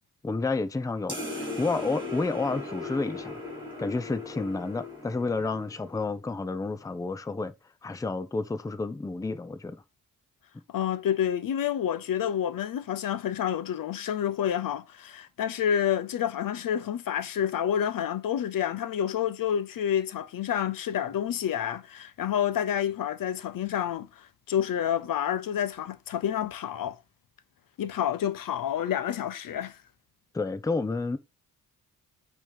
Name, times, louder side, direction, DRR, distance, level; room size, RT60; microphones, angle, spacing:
voice 1, 0.2-3.4 3.8-7.5 7.8-9.8 30.3-31.2, left 3 dB, 10° left, 0.6 m, -30 dB
sound 1, 1.1-6.0, left 2 dB, 15° right, 3.7 m, -38 dB
voice 2, 10.7-27.0 27.8-29.7, left 9 dB, 70° left, 0.8 m, -29 dB
9.0 x 3.2 x 5.1 m
wide cardioid pair, 140°, 35 cm